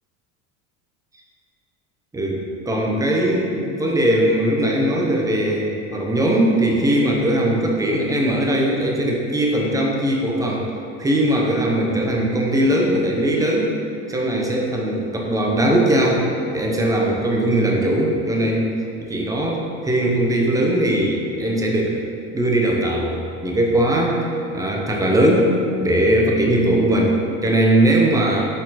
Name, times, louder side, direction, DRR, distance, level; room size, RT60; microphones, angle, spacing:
voice 1, 2.1-10.7 11.0-13.7 14.1-16.3 16.5-18.7 19.0-22.0 22.3-23.2 23.4-24.3 24.5-25.5 25.8-28.4, right 1 dB, 10° right, -1 dB, 0.8 m, -19 dB
6.5 x 4.3 x 4.1 m, 2.7 s
supercardioid pair, 115°, 41 cm